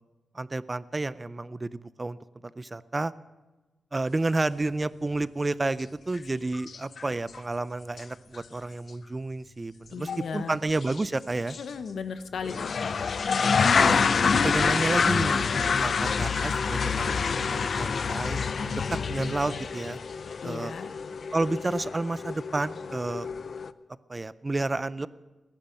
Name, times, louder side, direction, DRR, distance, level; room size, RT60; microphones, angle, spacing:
voice 1, 0.3-2.2 2.6-3.1 3.9-10.1 10.3-11.6 13.8-20.0 20.4-20.7 21.3-23.3 24.1-25.1, right 2 dB, 20° right, 17 dB, 0.4 m, -31 dB
sound 1, 6.1-6.2 6.5-7.0 7.3-7.4 8.0-8.1 8.3-8.4 10.1-10.3 10.8-11.0 11.5-11.6 12.4-23.7, left 5 dB, 55° left, 0.5 m, -27 dB
voice 2, 9.9-10.6 11.6-13.0 20.4-20.9, left 6 dB, 80° left, 9 dB, 1.0 m, -36 dB
19.0 x 10.0 x 6.5 m, 1.2 s
wide cardioid pair, 130°, 0 cm